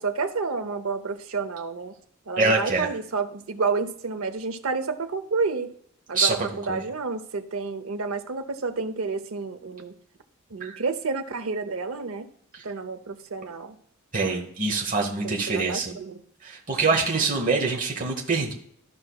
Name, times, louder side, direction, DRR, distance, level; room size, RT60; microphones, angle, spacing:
voice 1, 0.0-1.9 2.3-5.7 6.1-10.0 10.5-12.3 12.6-13.8 15.2-16.2 16.9-17.0, right 4 dB, 70° right, 8 dB, 0.7 m, -30 dB
voice 2, 2.4-2.9 6.1-6.3 6.7-6.8 10.6-10.8 14.1-15.9 16.4-18.5, right 3 dB, 35° right, -1 dB, 1.0 m, -24 dB
13.0 x 5.3 x 2.3 m, 0.67 s
head